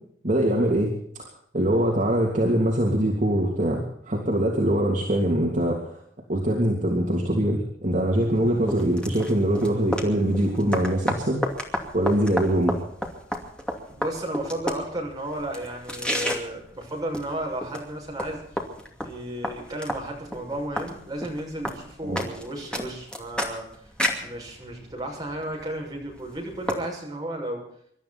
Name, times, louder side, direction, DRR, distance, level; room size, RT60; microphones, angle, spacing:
voice 1, 0.2-0.9 1.5-6.0 6.3-11.4 11.9-12.7 22.0-22.2, right 1 dB, 45° right, -2 dB, 3.0 m, -23 dB
sound 1, 8.2-26.7, equal, 5° left, 2.6 m, -33 dB
voice 2, 13.9-18.4 19.0-23.9 24.2-27.6, right 1 dB, 20° right, -1 dB, 6.4 m, -33 dB
25.5 x 12.5 x 4.3 m, 0.66 s
head